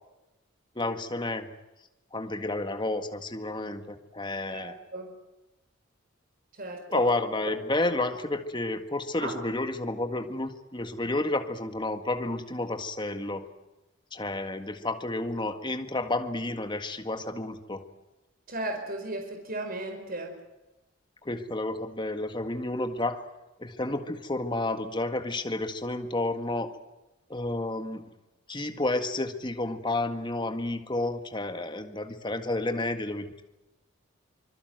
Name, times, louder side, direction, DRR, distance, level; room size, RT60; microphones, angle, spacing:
voice 1, 0.8-1.5 2.1-4.8 6.9-13.5 14.1-17.8 21.2-23.2 23.6-26.8 27.3-28.0 28.5-33.4, left 2 dB, 25° left, 7 dB, 1.8 m, -31 dB
voice 2, 4.5-5.1 6.6-7.0 9.2-9.4 18.5-20.4, right 2 dB, 45° right, 3 dB, 4.8 m, -35 dB
25.5 x 22.0 x 7.9 m, 0.99 s
head